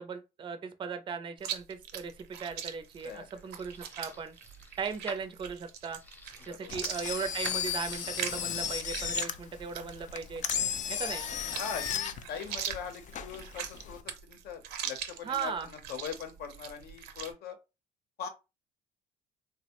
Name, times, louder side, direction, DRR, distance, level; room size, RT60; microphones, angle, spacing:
voice 1, 0.0-4.4 4.8-6.0 6.5-10.4 10.9-11.2 15.2-15.7, right 5 dB, 30° right, 0.4 m, -37 dB
Chewing mastication, 1.4-17.3, right 9 dB, 80° right, 0.6 m, -42 dB
sound 1, 2.3-8.2, left 2 dB, 10° left, 0.7 m, -51 dB
voice 2, 3.0-3.5 6.5-6.7 11.6-17.6 18.2-18.3, left 7 dB, 70° left, 0.8 m, -41 dB
Engine, 6.7-14.0, left 9 dB, 45° left, 0.4 m, -35 dB
3.4 x 2.0 x 2.9 m
cardioid pair, 110°, 17 cm